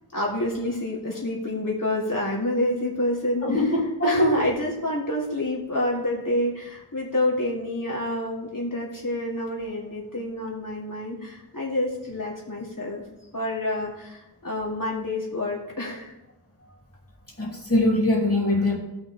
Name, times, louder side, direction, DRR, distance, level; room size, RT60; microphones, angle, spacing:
voice 1, 0.1-13.0 13.3-16.1, left 1 dB, 55° left, -5 dB, 3.5 m, -28 dB
voice 2, 3.4-4.5 17.4-18.8, left 1 dB, 35° left, -3 dB, 3.1 m, -22 dB
17.5 x 6.4 x 3.5 m, 0.96 s
wide cardioid pair, 45°, 40 cm